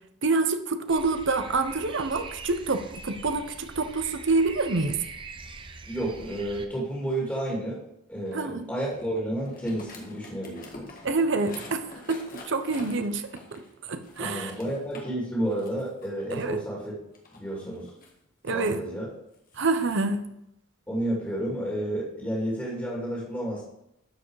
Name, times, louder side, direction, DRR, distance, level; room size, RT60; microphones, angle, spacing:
voice 1, 0.2-5.0 8.3-8.7 11.0-14.5 16.3-16.6 18.4-18.8 19.6-20.2, right 3 dB, 60° right, 9 dB, 0.8 m, -27 dB
sound 1, 0.9-6.7, right 3 dB, 25° right, 0.7 m, -43 dB
voice 2, 5.8-7.8 8.1-10.9 14.2-17.0 17.3-17.9 18.5-19.1 20.9-23.6, right 1 dB, 10° left, -5 dB, 2.3 m, -31 dB
sound 2, 8.3-15.1 15.5-16.5 17.1-18.7 19.3-20.0, left 2 dB, 45° left, 1.7 m, -47 dB
12.5 x 4.8 x 4.8 m, 0.80 s
head